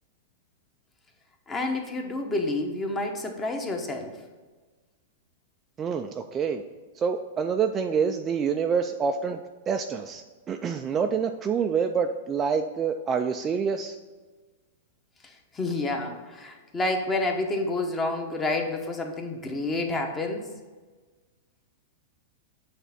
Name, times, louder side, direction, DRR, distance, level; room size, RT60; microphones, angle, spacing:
voice 1, 1.5-4.1 15.2-20.5, left 2 dB, 15° left, 3 dB, 1.0 m, -29 dB
voice 2, 5.8-6.6 7.0-9.4 9.7-14.0, right 6 dB, 20° right, 5 dB, 0.3 m, -27 dB
8.2 x 3.3 x 5.8 m, 1.3 s
hypercardioid pair, 145°, 0 cm